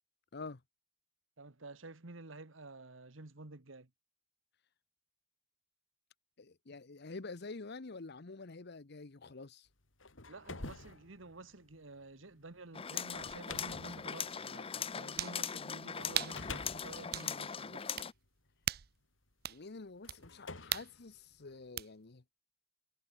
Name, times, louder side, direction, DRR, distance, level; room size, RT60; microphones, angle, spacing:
voice 1, 1.4-3.9 10.3-17.8, right 2 dB, 85° right, 1.7 m, -51 dB
voice 2, 6.4-9.7 19.5-22.2, left 3 dB, 60° left, 0.9 m, -47 dB
sound 1, 9.8-15.4 16.0-18.5 19.3-19.4 20.0-21.7, left 3 dB, 80° left, 3.3 m, -49 dB
sound 2, 12.7-18.1, left 7 dB, 30° left, 0.6 m, -40 dB
sound 3, 13.5-13.6 15.2-15.4 16.1-16.4 17.1-17.3 18.0-18.1 18.6-18.9 19.4-19.6 20.1-20.2 20.7-20.9 21.8-21.9, right 12 dB, 55° right, 0.6 m, -37 dB
head